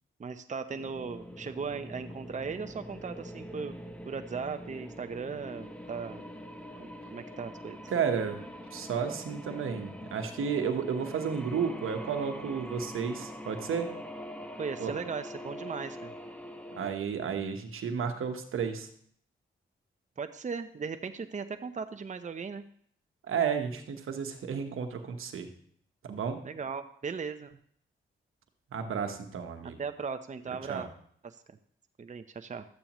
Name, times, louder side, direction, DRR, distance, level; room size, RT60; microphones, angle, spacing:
voice 1, 0.2-3.7 4.0-6.2 6.8-7.8 14.6-16.1 20.2-22.6 26.4-27.6 29.6-30.9 31.2-31.4 32.0-32.7, right 5 dB, 35° right, 9 dB, 0.7 m, -37 dB
sound 1, 0.7-16.9, equal, 5° left, 1.1 m, -44 dB
voice 2, 7.9-8.4 8.7-13.9 14.8-14.9 16.8-18.9 23.3-25.5 26.0-26.4 28.7-29.8 30.7-30.9, right 6 dB, 80° right, 6 dB, 1.1 m, -32 dB
12.5 x 8.5 x 3.0 m, 0.62 s
cardioid pair, 55°, 21 cm